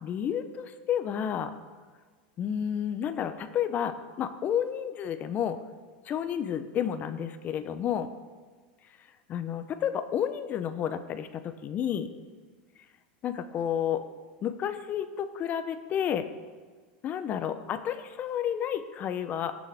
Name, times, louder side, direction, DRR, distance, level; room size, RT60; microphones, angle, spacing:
voice 1, 0.0-1.5 2.4-5.6 6.0-8.1 9.3-12.1 13.2-14.0 14.4-16.3 17.0-19.5, left 9 dB, 30° left, 10 dB, 0.6 m, -31 dB
17.5 x 6.2 x 3.4 m, 1.4 s
supercardioid pair, 135°, 5 cm